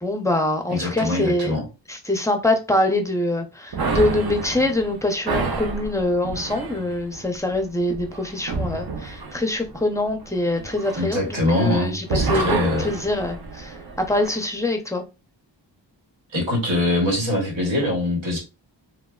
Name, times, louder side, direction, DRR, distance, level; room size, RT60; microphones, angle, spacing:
voice 1, 0.0-1.6 1.9-13.7 14.1-15.0, left 1 dB, 5° left, 3 dB, 0.5 m, -24 dB
voice 2, 0.7-1.7 10.9-12.9 16.3-18.4, left 1 dB, 80° right, 0 dB, 1.2 m, -23 dB
sound 1, 3.7-11.7 12.0-14.4, right 4 dB, 55° right, 0.7 m, -29 dB
3.2 x 2.1 x 2.3 m, 0.29 s
cardioid pair, 70°, 46 cm